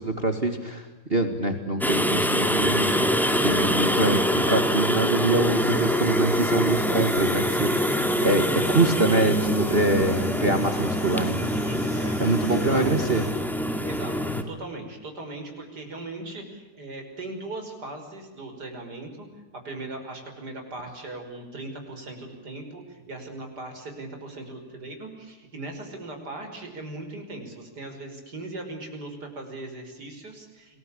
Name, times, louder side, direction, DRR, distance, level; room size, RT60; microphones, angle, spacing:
voice 1, 0.0-3.1 3.4-11.5 12.2-13.2, right 2 dB, 25° right, 6 dB, 2.1 m, -24 dB
sound 1, 1.8-14.4, equal, ahead, 2.1 m, -25 dB
sound 2, 5.5-13.3, left 1 dB, 70° left, 9.0 m, -44 dB
voice 2, 11.5-12.8 13.8-19.3 19.5-30.8, right 2 dB, 45° right, 4 dB, 5.9 m, -39 dB
28.5 x 20.5 x 8.7 m, 1.2 s
omnidirectional pair, 2.4 m